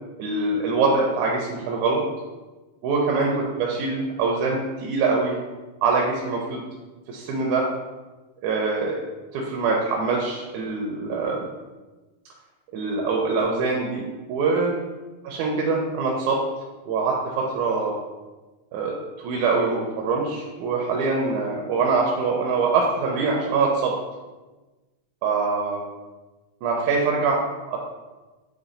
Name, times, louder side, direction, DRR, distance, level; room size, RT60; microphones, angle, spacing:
voice 1, 0.2-2.0 2.8-5.4 5.8-6.6 7.1-7.7 8.4-9.0 9.3-11.5 12.7-14.8 15.3-16.4 16.9-18.0 18.7-23.9 25.2-25.8 26.6-27.8, right 4 dB, 80° right, -2 dB, 1.9 m, -24 dB
5.8 x 2.2 x 3.8 m, 1.2 s
omnidirectional pair, 3.5 m